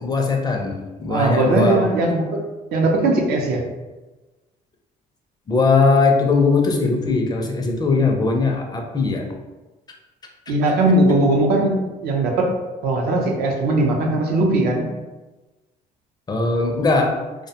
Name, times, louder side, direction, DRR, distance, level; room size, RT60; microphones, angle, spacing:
voice 1, 0.0-1.9 5.5-9.3 16.3-17.2, left 3 dB, 25° left, 2 dB, 0.4 m, -19 dB
voice 2, 1.1-2.4 2.7-3.6 10.5-12.5 12.8-14.9, right 2 dB, 70° right, 1 dB, 0.5 m, -19 dB
2.4 x 2.1 x 2.8 m, 1.1 s
cardioid pair, 110°, 17 cm